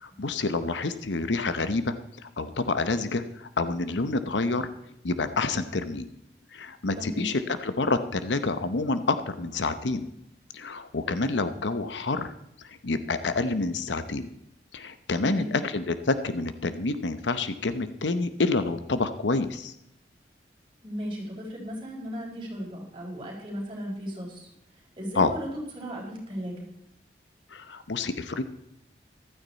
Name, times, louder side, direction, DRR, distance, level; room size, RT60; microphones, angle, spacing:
voice 1, 0.0-4.7 5.0-6.1 6.5-10.1 10.5-12.3 12.6-14.3 14.7-19.7 25.2-25.3 27.5-28.4, left 3 dB, 85° left, 11 dB, 0.8 m, -28 dB
voice 2, 7.0-7.3 15.1-15.6 20.8-24.5 25.0-25.5 25.7-26.7, equal, 30° right, -3 dB, 4.3 m, -36 dB
15.0 x 12.5 x 4.1 m, 0.78 s
head